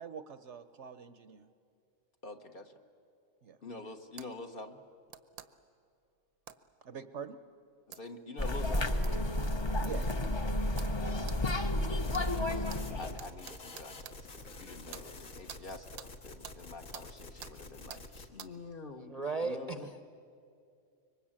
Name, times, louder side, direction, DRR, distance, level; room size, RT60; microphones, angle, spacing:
voice 1, 0.0-1.5 3.4-3.6 6.8-7.4 9.8-10.1, right 7 dB, 60° right, 12 dB, 1.0 m, -44 dB
voice 2, 2.2-2.7 3.6-4.8 7.9-8.9 11.9-19.9, left 2 dB, 40° left, 5 dB, 1.3 m, -47 dB
sound 1, 4.2-4.3 5.1-5.5 6.5-6.6 7.9-8.0 9.0-9.2 9.8-9.9 10.8-10.9 11.3-11.4 12.1-12.3 12.7-12.8 13.2-14.2 14.9-15.1 15.5-15.6 16.0-16.1 16.4-16.6 16.9-17.1 17.4-17.5 17.9-18.0 18.4-18.5, right 9 dB, 85° right, 1.3 m, -47 dB
sound 2, 8.4-13.2, left 1 dB, 25° left, 0.7 m, -31 dB
sound 3, 12.0-18.3, left 2 dB, 65° left, 2.0 m, -48 dB
voice 3, 19.0-20.0, right 3 dB, 35° right, 8 dB, 0.8 m, -36 dB
25.5 x 23.5 x 8.8 m, 2.5 s
omnidirectional pair, 1.5 m